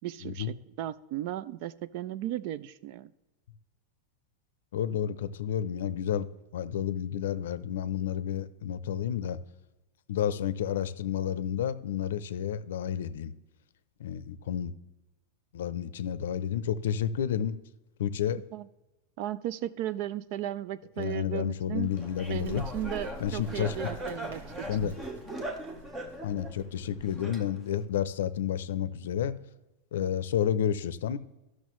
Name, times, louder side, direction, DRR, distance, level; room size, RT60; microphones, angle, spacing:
voice 1, 0.0-3.1 18.5-18.7 19.2-21.9 22.3-24.9, right 13 dB, 40° right, 17 dB, 0.3 m, -36 dB
voice 2, 4.7-6.3 6.5-9.4 10.1-13.3 14.0-14.8 15.5-17.6 18.0-18.4 21.0-22.6 23.2-23.8 24.7-25.0 26.2-29.3 29.9-31.2, left 9 dB, 85° left, 15 dB, 0.5 m, -30 dB
Bird, 21.7-27.4, equal, 90° right, 1.6 m, -46 dB
Laughter, 22.0-27.8, right 1 dB, 10° right, 0.7 m, -40 dB
13.0 x 6.2 x 3.1 m, 1.0 s
supercardioid pair, 175°, 0 cm